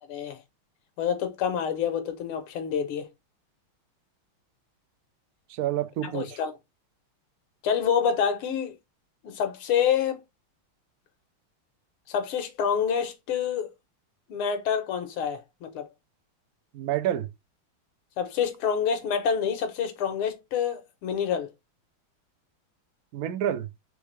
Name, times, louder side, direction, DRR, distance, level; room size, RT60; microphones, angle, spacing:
voice 1, 1.0-3.1 6.1-6.5 7.6-8.7 9.2-10.2 12.1-13.7 14.3-15.9 18.2-21.5, left 7 dB, 90° left, 1.9 m, -27 dB
voice 2, 5.5-6.4 16.7-17.3 23.1-23.7, right 11 dB, 70° right, 0.8 m, -28 dB
4.7 x 3.2 x 3.2 m
omnidirectional pair, 2.3 m